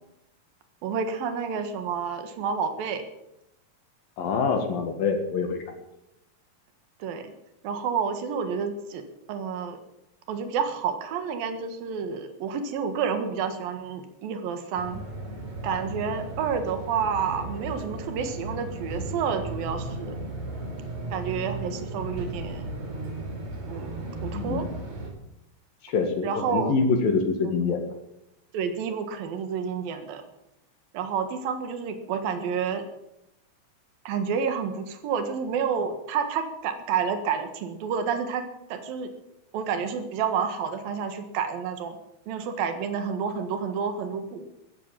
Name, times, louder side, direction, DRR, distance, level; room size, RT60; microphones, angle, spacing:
voice 1, 0.8-3.0 7.0-7.3 7.6-9.8 10.3-15.0 15.6-20.2 21.1-22.7 23.7-24.7 26.2-26.8 27.5-27.8 28.5-30.2 30.9-32.8 34.1-39.1 39.5-42.0 42.3-44.4, right 6 dB, 80° right, 8 dB, 3.4 m, -29 dB
voice 2, 4.2-5.6 24.3-24.7 25.8-27.8, left 5 dB, 75° left, 4 dB, 3.6 m, -25 dB
sound 1, 14.7-25.1, right 2 dB, 55° right, 4.9 m, -35 dB
14.5 x 13.5 x 7.5 m, 0.84 s
omnidirectional pair, 4.1 m